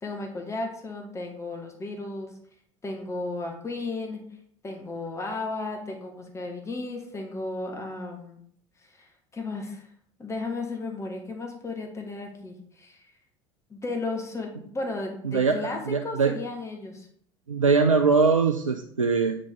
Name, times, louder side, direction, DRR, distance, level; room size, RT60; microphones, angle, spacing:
voice 1, 0.0-2.3 2.8-4.2 4.6-8.4 8.8-9.9 10.2-13.0 13.7-17.1, left 2 dB, 15° left, 2 dB, 1.7 m, -34 dB
voice 2, 15.2-16.3 17.5-19.4, right 4 dB, 90° right, 5 dB, 0.5 m, -22 dB
8.6 x 4.9 x 3.8 m, 0.62 s
figure-of-eight pair, 70°, 16 cm